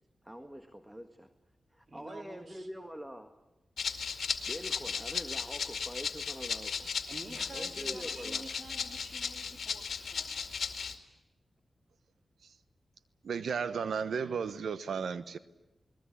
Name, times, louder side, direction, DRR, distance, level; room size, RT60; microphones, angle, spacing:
voice 1, 0.2-1.3 1.7-3.3 4.5-6.9 7.5-8.5, equal, 10° right, 1.7 m, -44 dB
voice 2, 1.9-2.7 7.1-10.9, right 3 dB, 55° right, 3.4 m, -49 dB
Rattle (instrument), 3.8-11.0, left 6 dB, 80° left, 2.1 m, -36 dB
voice 3, 13.2-15.4, right 6 dB, 90° right, 1.1 m, -34 dB
29.0 x 21.0 x 8.6 m
cardioid pair, 60°, 0 cm